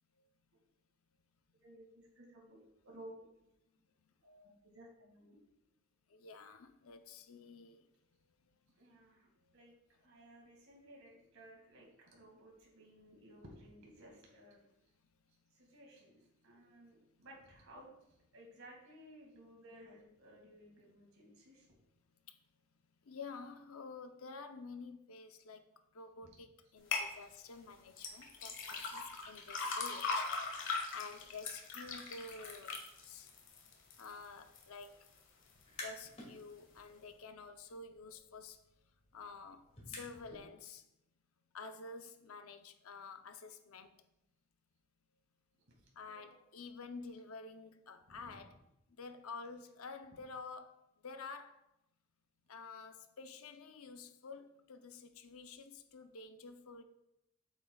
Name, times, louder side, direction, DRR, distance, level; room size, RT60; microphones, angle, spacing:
voice 1, 1.6-2.6 2.8-3.1 4.2-5.4 8.8-9.3 9.5-9.7 10.0-14.6 15.5-16.2 16.4-17.9 18.3-21.7 27.0-27.2 46.1-46.4 48.1-48.5, right 1 dB, 85° right, 2.2 m, -57 dB
voice 2, 6.1-7.9 22.3-22.4 23.0-25.6 25.9-32.8 33.0-33.3 34.0-35.0 35.8-38.6 39.1-40.8 41.5-43.9 46.0-48.6 49.0-51.6 52.5-56.8, left 4 dB, 90° left, 0.7 m, -50 dB
sound 1, 26.9-27.1 28.0-34.1 34.5-35.1 35.6-35.7, left 4 dB, 65° left, 1.4 m, -39 dB
sound 2, 35.5-36.3 36.7-40.5, left 2 dB, 30° left, 2.2 m, -52 dB
8.4 x 8.2 x 2.4 m
head